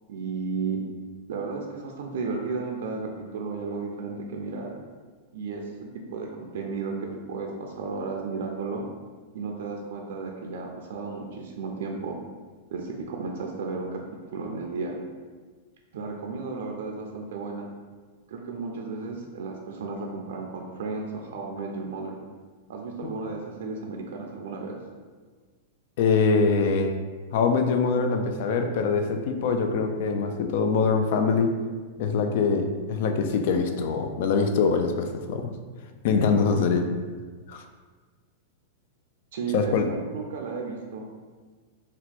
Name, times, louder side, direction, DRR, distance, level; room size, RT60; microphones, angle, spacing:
voice 1, 0.1-0.8 1.3-4.8 5.3-8.8 9.3-12.2 12.7-15.0 15.9-17.7 18.3-22.2 22.7-24.8 39.3-41.1, right 4 dB, 75° right, 1 dB, 0.4 m, -33 dB
voice 2, 26.0-27.0 27.3-31.5 32.0-35.5 36.0-36.9 37.5-37.6 39.5-39.9, left 5 dB, 60° left, 6 dB, 0.4 m, -23 dB
2.8 x 2.2 x 4.1 m, 1.5 s
supercardioid pair, 145°, 0 cm